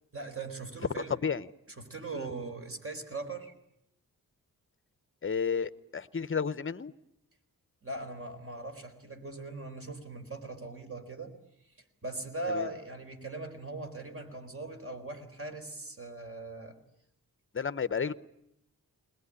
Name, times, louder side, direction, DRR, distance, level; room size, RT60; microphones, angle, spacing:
voice 1, 0.1-1.2 1.8-3.5 7.8-11.4 12.0-16.8, right 2 dB, 40° right, 5 dB, 4.1 m, -40 dB
voice 2, 5.2-6.9 12.5-12.7 17.5-18.1, left 6 dB, 35° left, 15 dB, 0.8 m, -32 dB
21.5 x 20.5 x 9.9 m, 0.79 s
wide cardioid pair, 100°, 36 cm